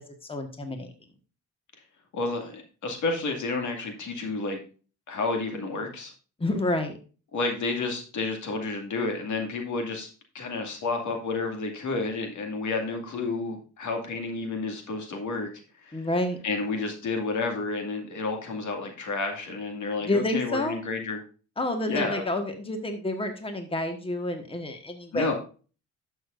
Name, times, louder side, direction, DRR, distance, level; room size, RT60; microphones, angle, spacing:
voice 1, 0.3-0.9 6.4-7.0 15.9-16.4 20.0-20.8 21.6-25.3, left 1 dB, 20° left, 5 dB, 1.5 m, -29 dB
voice 2, 2.1-4.6 5.1-6.1 7.3-10.1 10.3-15.5 15.8-16.1 16.4-21.2 21.9-22.2 25.1-25.3, left 3 dB, 70° left, 3 dB, 2.3 m, -30 dB
11.5 x 6.8 x 2.6 m, 0.36 s
cardioid pair, 85°, 31 cm